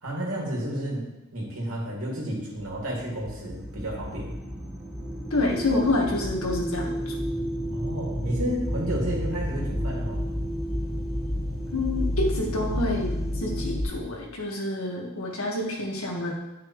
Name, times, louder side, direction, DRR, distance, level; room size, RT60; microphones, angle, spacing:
voice 1, 0.0-1.1 1.3-4.3 7.7-10.2, right 1 dB, 85° right, -3 dB, 2.6 m, -31 dB
sound 1, 2.6-13.8, equal, ahead, 1.4 m, -31 dB
voice 2, 5.3-7.2 11.7-13.1 13.4-16.3, left 2 dB, 80° left, 0 dB, 1.6 m, -28 dB
10.0 x 5.8 x 3.2 m, 0.99 s
head